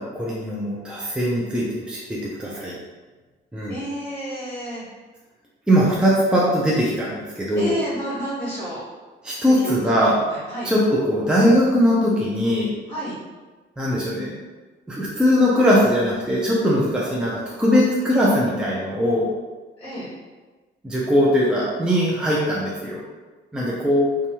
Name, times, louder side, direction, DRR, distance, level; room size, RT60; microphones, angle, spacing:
voice 1, 0.0-2.7 3.5-3.8 5.7-7.7 9.2-10.3 10.6-12.7 13.8-14.3 14.9-19.3 20.8-23.0 23.5-24.1, equal, 5° right, -6 dB, 0.5 m, -20 dB
voice 2, 3.7-4.9 7.5-8.8 9.4-9.8 10.3-10.7 12.9-13.2 19.8-20.1, equal, 20° left, -11 dB, 1.3 m, -30 dB
2.6 x 2.3 x 2.9 m, 1.3 s
cardioid pair, 90°, 20 cm